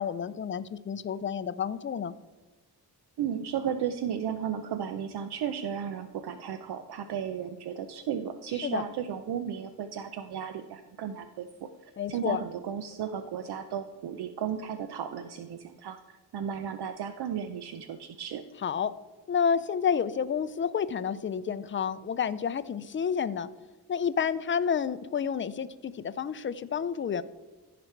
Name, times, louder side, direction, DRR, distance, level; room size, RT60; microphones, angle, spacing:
voice 1, 0.0-2.1 8.6-8.8 12.0-12.4 18.6-18.9 19.3-23.5 23.9-27.2, left 7 dB, 30° left, 15 dB, 0.4 m, -30 dB
voice 2, 3.2-11.5 12.1-16.0 16.3-18.4, right 8 dB, 75° right, 9 dB, 0.6 m, -34 dB
15.0 x 5.1 x 4.5 m, 1.2 s
cardioid pair, 110°, 39 cm